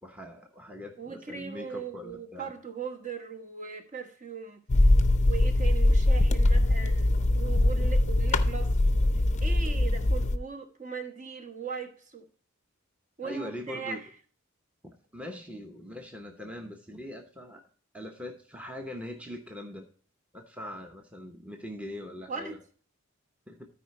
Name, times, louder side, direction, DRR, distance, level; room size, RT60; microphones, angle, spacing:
voice 1, 0.0-2.5 13.2-14.0 14.8-17.6 17.9-19.8 20.3-22.6 23.5-23.7, left 1 dB, 5° right, 4 dB, 0.9 m, -42 dB
voice 2, 1.0-4.6 5.3-12.3 13.2-14.1 22.3-22.6, right 5 dB, 35° right, 5 dB, 1.2 m, -39 dB
sound 1, 4.7-10.4, left 1 dB, 35° left, 0.6 m, -22 dB
13.0 x 4.9 x 4.2 m, 0.43 s
head